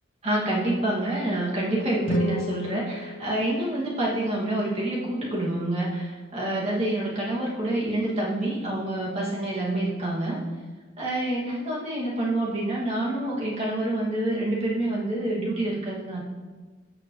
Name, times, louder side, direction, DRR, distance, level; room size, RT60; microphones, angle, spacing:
voice 1, 0.2-10.4 11.0-16.2, right 1 dB, 35° right, -6 dB, 2.5 m, -27 dB
sound 1, 2.0-4.2, equal, 80° left, 1.0 m, -31 dB
15.5 x 5.8 x 3.3 m, 1.4 s
head